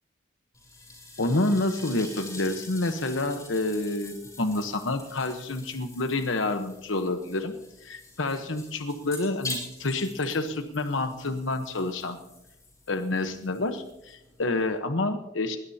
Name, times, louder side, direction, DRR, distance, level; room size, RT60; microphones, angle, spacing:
sound 1, 0.5-14.8, left 2 dB, 20° left, 6.0 m, -45 dB
voice 1, 1.2-7.5 7.8-12.2 12.9-15.6, left 2 dB, 85° left, 7 dB, 1.1 m, -28 dB
21.0 x 19.5 x 2.8 m, 0.90 s
head